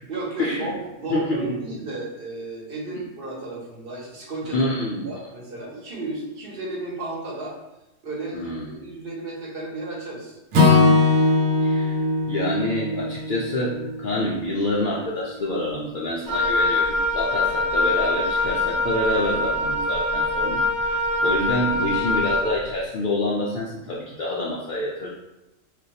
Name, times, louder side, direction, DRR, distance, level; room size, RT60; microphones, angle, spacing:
voice 1, 0.1-4.6 4.9-7.5 8.0-10.4, right 2 dB, 50° right, -4 dB, 1.0 m, -33 dB
voice 2, 1.1-1.5 4.5-5.1 8.3-8.7 11.6-12.0 12.3-25.1, left 1 dB, 65° left, -5 dB, 0.5 m, -27 dB
Acoustic guitar / Strum, 10.5-14.8, left 3 dB, 85° right, 1.0 m, -20 dB
Wind instrument woodwind instrument, 16.3-22.5, left 2 dB, 25° right, 0.5 m, -23 dB
2.5 x 2.2 x 4.0 m, 0.94 s
omnidirectional pair, 1.4 m